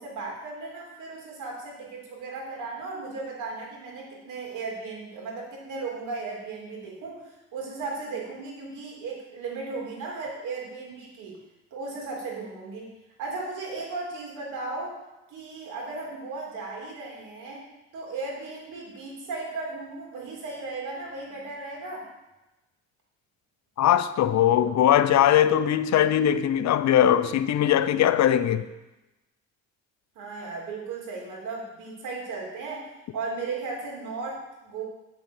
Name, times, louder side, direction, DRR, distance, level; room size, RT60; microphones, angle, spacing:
voice 1, 0.0-7.2 7.5-11.4 11.7-12.9 13.2-15.0 15.3-17.6 17.9-22.1 30.1-32.8 33.1-34.8, right 3 dB, 85° right, 3.1 m, -36 dB
voice 2, 23.8-28.6, left 10 dB, 65° left, 0.7 m, -20 dB
8.0 x 6.1 x 7.2 m
cardioid pair, 90°, 30 cm